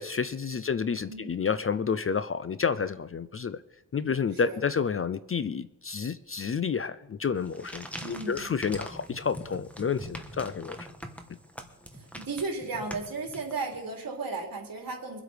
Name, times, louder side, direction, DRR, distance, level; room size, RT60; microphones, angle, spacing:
voice 1, 0.0-3.6 3.9-10.9, left 6 dB, 35° left, 14 dB, 0.4 m, -30 dB
voice 2, 4.3-4.6 8.0-8.5 11.9-15.2, right 3 dB, 60° right, 1 dB, 3.3 m, -35 dB
sound 1, 7.4-13.9, equal, 5° left, 1.3 m, -43 dB
23.5 x 8.0 x 5.1 m, 0.94 s
wide cardioid pair, 135°, 40 cm